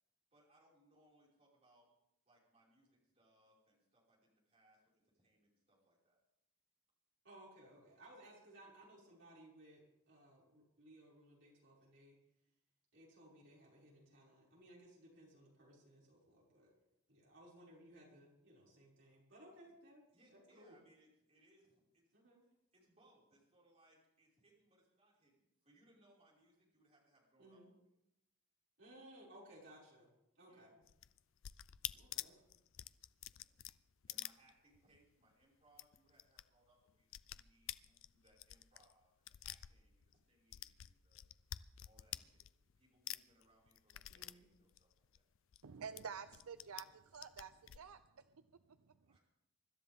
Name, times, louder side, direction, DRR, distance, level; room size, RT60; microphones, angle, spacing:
voice 1, 0.3-1.9 2.3-6.2 19.7-19.8 20.1-22.0 22.4-27.6 30.4-30.7 33.2-33.6 34.1-41.2 41.8-45.1 49.0-49.2, right 1 dB, 30° right, -5 dB, 5.6 m, -72 dB
voice 2, 7.2-12.2 12.9-16.7 17.1-20.0 20.3-20.8 22.1-22.4 27.4-27.7 28.8-30.1 30.3-30.8 31.9-32.3 44.1-44.5, right 1 dB, 55° right, -5 dB, 6.2 m, -61 dB
sound 1, 30.8-35.0 35.3-35.4 35.7-36.4 36.7-40.2 40.5-42.8 43.1-45.6 46.0-46.8 47.1-47.8, left 13 dB, 65° left, 0.4 m, -48 dB
voice 3, 45.6-49.2, right 6 dB, 85° right, 11 dB, 0.6 m, -51 dB
24.5 x 12.5 x 3.7 m, 0.83 s
head